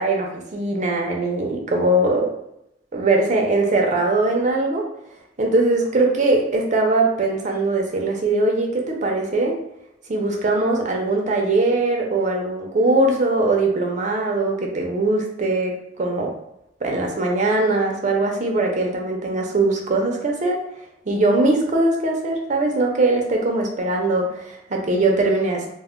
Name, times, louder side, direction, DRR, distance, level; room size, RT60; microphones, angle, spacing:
voice 1, 0.0-2.3 2.9-4.9 5.4-9.6 10.1-16.3 16.8-20.6 21.1-25.7, right 2 dB, 40° right, 1 dB, 0.5 m, -21 dB
2.1 x 2.1 x 3.6 m, 0.81 s
head